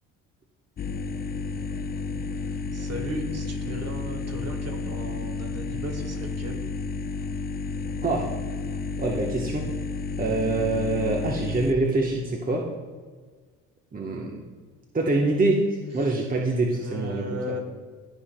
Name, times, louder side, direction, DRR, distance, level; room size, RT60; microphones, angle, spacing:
sound 1, 0.8-11.7, left 4 dB, 25° left, 0.5 m, -31 dB
voice 1, 2.4-6.6 16.0-16.1 16.7-17.6, equal, 40° right, 3 dB, 1.7 m, -36 dB
voice 2, 9.0-9.6 10.2-12.6 13.9-14.4 14.9-15.6 15.9-17.2, right 2 dB, 20° right, -1 dB, 1.1 m, -25 dB
13.0 x 5.6 x 2.2 m, 1.5 s
hypercardioid pair, 55°, 38 cm